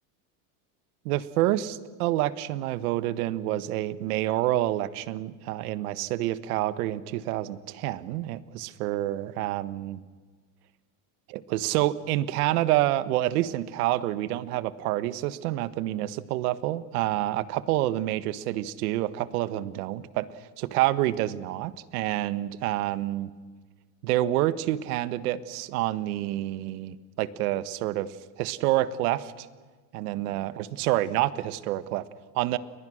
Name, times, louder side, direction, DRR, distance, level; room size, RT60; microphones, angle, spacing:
voice 1, 1.0-10.0 11.3-23.3 24.0-29.5 29.9-32.1 32.3-32.6, right 15 dB, 75° right, 14 dB, 1.4 m, -28 dB
29.5 x 22.5 x 6.4 m, 1.4 s
supercardioid pair, 135°, 45 cm